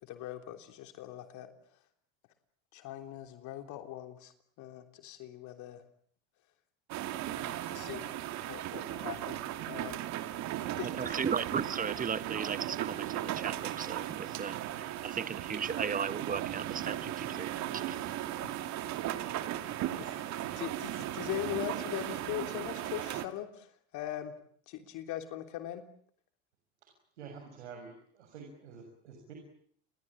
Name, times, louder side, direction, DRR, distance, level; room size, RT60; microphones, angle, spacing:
voice 1, 0.0-1.5 2.7-5.8 7.3-8.1 8.5-9.4 9.7-10.0 10.8-11.2 18.4-18.5 20.0-24.3 24.7-25.8, left 12 dB, 60° left, 7 dB, 3.4 m, -41 dB
sound 1, 6.9-23.3, right 13 dB, 55° right, 2.6 m, -37 dB
voice 2, 10.8-18.1, right 6 dB, 25° right, 15 dB, 1.4 m, -36 dB
voice 3, 27.2-29.3, right 5 dB, 90° right, 3 dB, 6.9 m, -48 dB
30.0 x 22.0 x 8.8 m, 0.62 s
hypercardioid pair, 90°, 34 cm